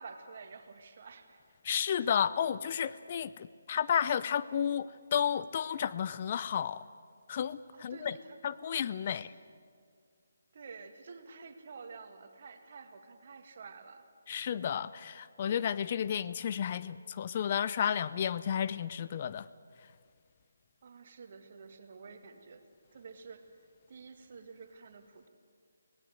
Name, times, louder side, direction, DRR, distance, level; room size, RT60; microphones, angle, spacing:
voice 1, 0.0-1.6 7.7-9.3 10.5-14.1 20.8-22.6 22.9-23.6 23.9-25.3, right 4 dB, 45° right, 7 dB, 2.0 m, -50 dB
voice 2, 1.6-6.8 7.3-8.1 8.4-9.3 14.3-19.5, left 8 dB, 35° left, 15 dB, 0.5 m, -32 dB
25.0 x 18.0 x 7.8 m, 2.1 s
figure-of-eight pair, 150°, 0 cm